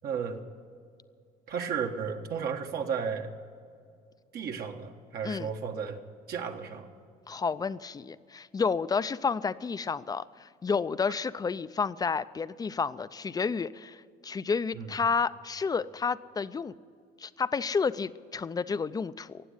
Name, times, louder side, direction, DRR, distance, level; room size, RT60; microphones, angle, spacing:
voice 1, 0.0-0.4 1.5-3.3 4.3-6.0 6.3-6.9 11.1-11.2 14.7-15.0, right 6 dB, 65° right, 3 dB, 1.5 m, -34 dB
voice 2, 7.3-14.0 14.2-16.7 17.2-19.4, left 5 dB, 20° left, 15 dB, 0.5 m, -30 dB
15.5 x 9.2 x 9.8 m, 2.2 s
cardioid pair, 110°, 17 cm